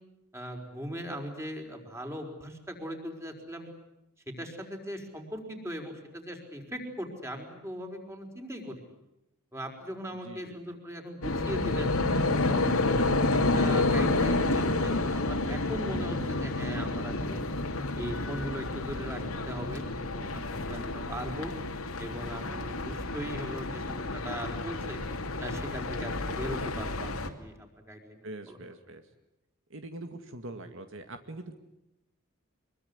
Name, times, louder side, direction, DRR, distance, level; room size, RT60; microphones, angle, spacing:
voice 1, 0.3-3.7 4.3-8.9 9.5-11.9 12.4-17.4 18.0-19.2 19.5-21.5 22.0-25.0 25.4-27.5 27.9-28.6, equal, 15° right, 4 dB, 5.1 m, -39 dB
voice 2, 10.2-10.6 28.2-29.0 29.7-31.6, right 2 dB, 65° right, 7 dB, 2.0 m, -43 dB
sound 1, 11.2-27.3, left 2 dB, 85° left, 2.9 m, -30 dB
25.0 x 23.0 x 9.9 m, 0.89 s
head